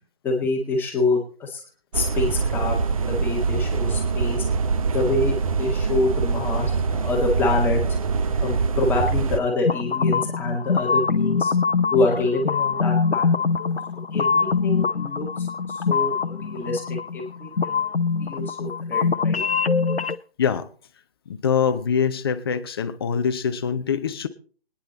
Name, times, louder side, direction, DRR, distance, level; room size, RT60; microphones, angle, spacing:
voice 1, 0.2-1.6 1.9-2.8 3.1-4.5 4.9-7.8 8.4-11.5 11.9-13.4 14.1-17.9 18.2-19.4, left 2 dB, 5° left, -2 dB, 1.9 m, -26 dB
sound 1, 1.9-9.4, right 5 dB, 35° right, 0.8 m, -24 dB
sound 2, 9.6-20.2, left 5 dB, 85° left, 0.8 m, -23 dB
voice 2, 21.3-24.3, left 7 dB, 25° left, 10 dB, 0.8 m, -24 dB
22.5 x 10.0 x 4.1 m, 0.42 s
figure-of-eight pair, 150°, 30 cm